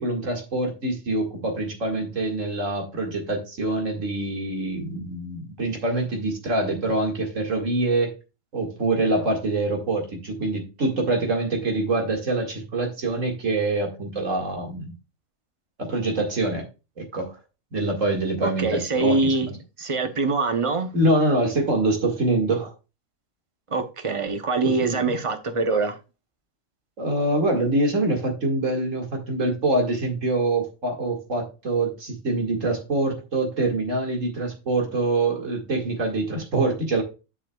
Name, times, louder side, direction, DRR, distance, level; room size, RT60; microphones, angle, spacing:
voice 1, 0.0-8.1 8.5-14.9 15.8-16.7 17.0-17.4 17.7-19.5 20.9-22.7 24.6-25.1 27.0-37.0, right 2 dB, 75° right, 2.4 m, -25 dB
voice 2, 18.4-20.9 23.7-26.0, right 3 dB, 30° right, 0.7 m, -24 dB
10.5 x 6.2 x 2.3 m
omnidirectional pair, 1.3 m